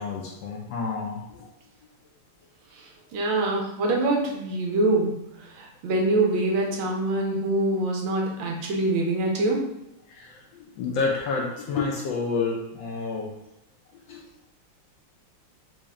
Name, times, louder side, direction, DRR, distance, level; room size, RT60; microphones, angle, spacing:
voice 1, 0.0-1.5 10.1-13.3 14.1-14.2, left 4 dB, 75° left, -1 dB, 1.1 m, -29 dB
voice 2, 2.7-9.6, right 2 dB, 75° right, 0 dB, 1.5 m, -25 dB
4.0 x 2.1 x 3.5 m, 0.89 s
omnidirectional pair, 2.4 m